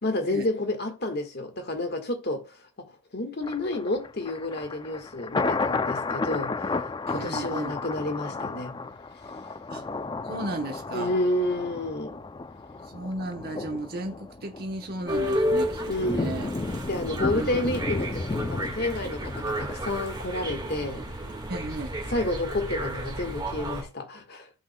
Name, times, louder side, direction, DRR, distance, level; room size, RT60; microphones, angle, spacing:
voice 1, 0.0-6.8 7.1-8.7 10.9-12.2 15.9-16.4 16.9-21.0 22.1-24.5, left 1 dB, 50° left, 1.5 m, -30 dB
Thunder, 3.4-20.5 20.9-21.0, left 3 dB, 20° left, 0.3 m, -33 dB
voice 2, 7.1-7.8 9.7-9.8 10.2-11.1 12.8-16.5 17.3-17.7 21.5-22.0, right 2 dB, 45° right, 1.0 m, -35 dB
sound 1, 15.1-23.8, equal, 20° right, 1.7 m, -32 dB
15.5 x 5.6 x 2.2 m
head